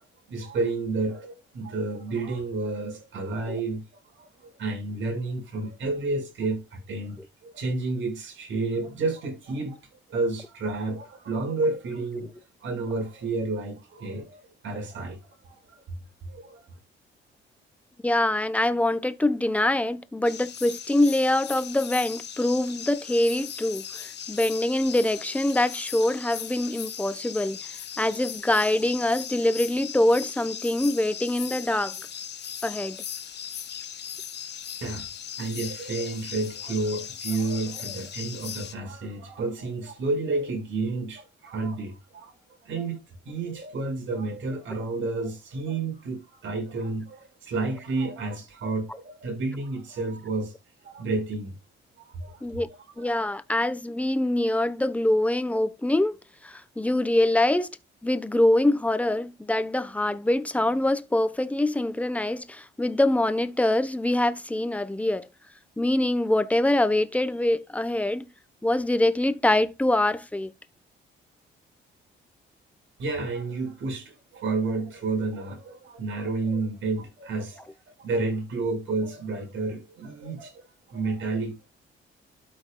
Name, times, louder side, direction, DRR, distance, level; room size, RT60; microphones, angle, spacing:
voice 1, 0.3-3.8 4.1-9.8 10.1-12.3 12.6-15.8 16.3-16.6 34.8-35.1 35.4-42.3 42.6-50.5 50.8-51.6 52.0-52.5 53.0-53.1 73.0-77.7 78.0-80.6 80.9-81.6, right 3 dB, 70° right, 5.2 m, -30 dB
voice 2, 18.0-27.6 28.0-32.0 32.6-33.0 52.4-52.7 53.0-56.2 56.4-57.7 58.0-65.3 65.8-68.3 68.6-70.5, left 1 dB, 5° left, 0.9 m, -24 dB
sound 1, 20.2-38.7, left 8 dB, 60° left, 1.4 m, -38 dB
13.0 x 5.3 x 2.3 m
cardioid pair, 90°, 20 cm